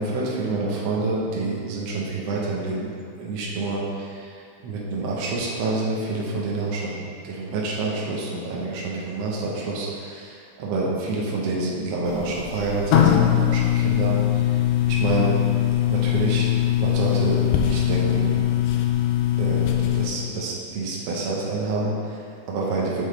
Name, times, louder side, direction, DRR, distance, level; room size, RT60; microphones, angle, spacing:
voice 1, 0.0-14.6 14.9-15.3 15.9-16.5 16.8-18.4 19.4-23.1, right 3 dB, 80° right, -4 dB, 1.4 m, -28 dB
sound 1, 12.1-20.1, left 11 dB, 80° left, 2.4 m, -21 dB
7.8 x 7.2 x 3.3 m, 2.4 s
omnidirectional pair, 4.5 m